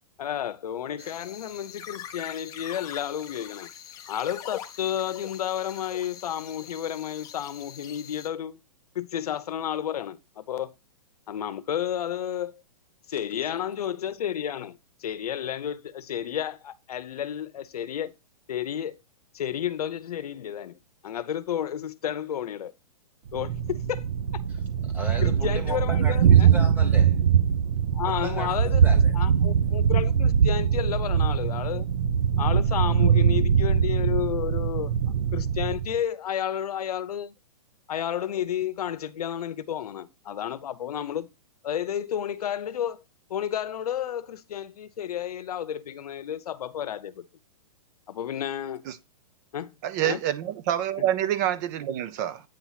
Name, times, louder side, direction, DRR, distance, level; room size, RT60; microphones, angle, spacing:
voice 1, 0.2-3.7 4.1-8.6 8.9-10.7 11.3-12.6 13.1-18.1 18.5-19.0 19.3-22.7 23.3-24.1 25.2-26.5 27.9-28.9 29.1-31.9 32.4-34.9 35.3-37.3 37.9-41.3 41.6-43.0 43.3-47.2 48.1-48.8 49.5-49.7 50.0-50.2 51.0-51.1, left 10 dB, 75° left, 0.7 m, -31 dB
sound 1, 1.0-8.3, left 10 dB, 20° left, 0.7 m, -43 dB
Thunder, 23.3-36.0, right 7 dB, 75° right, 0.6 m, -22 dB
voice 2, 24.8-27.1 28.0-29.1, right 1 dB, 10° right, 1.3 m, -37 dB
voice 3, 49.8-52.4, right 11 dB, 30° right, 0.4 m, -27 dB
8.9 x 3.0 x 5.6 m
hypercardioid pair, 155°, 19 cm